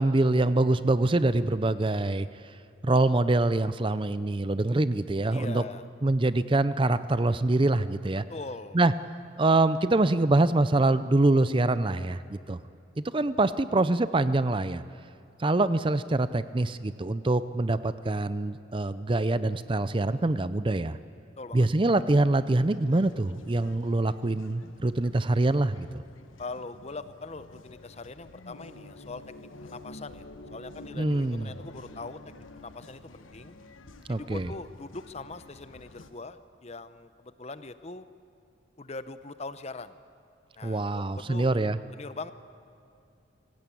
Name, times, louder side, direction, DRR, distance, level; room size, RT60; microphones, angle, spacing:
voice 1, 0.0-2.3 2.8-5.6 6.0-8.2 8.7-8.9 9.4-12.6 13.0-14.8 15.4-21.0 21.5-26.0 31.0-31.5 34.1-34.5 40.6-41.8, right 2 dB, 25° right, 14 dB, 0.5 m, -25 dB
voice 2, 5.3-5.8 8.3-8.8 21.4-21.7 26.4-29.2 29.6-32.2 32.6-33.5 34.1-38.1 38.8-40.0 40.6-41.5 41.9-42.3, left 3 dB, 35° left, 12 dB, 0.8 m, -41 dB
sound 1, 22.6-36.1, left 2 dB, 85° left, 1.2 m, -49 dB
25.0 x 17.0 x 8.5 m, 2.7 s
head